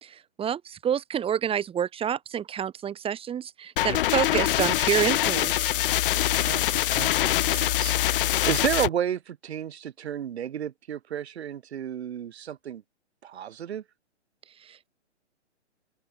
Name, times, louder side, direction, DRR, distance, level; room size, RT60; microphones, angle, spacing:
voice 1, 0.0-5.7 14.6-14.9, right 9 dB, 15° right, 3.2 m, -28 dB
sound 1, 3.8-8.9, left 14 dB, 50° left, 1.9 m, -24 dB
voice 2, 6.1-12.8 13.2-13.8, right 9 dB, 65° right, 4.1 m, -32 dB
open air
hypercardioid pair, 135°, 35 cm